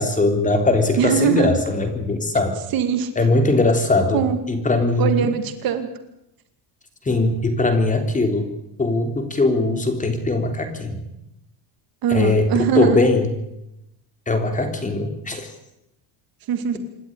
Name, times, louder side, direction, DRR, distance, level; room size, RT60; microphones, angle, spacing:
voice 1, 0.0-2.6 3.2-4.2 4.5-5.3 7.0-8.5 8.8-11.1 12.1-13.3 14.3-15.5, left 2 dB, 15° left, 6 dB, 3.5 m, -20 dB
voice 2, 1.0-1.5 2.7-3.1 4.1-4.4 5.0-5.9 12.0-13.0 16.5-16.8, right 7 dB, 50° right, 8 dB, 2.5 m, -21 dB
27.0 x 12.0 x 9.9 m, 0.87 s
cardioid pair, 130°, 44 cm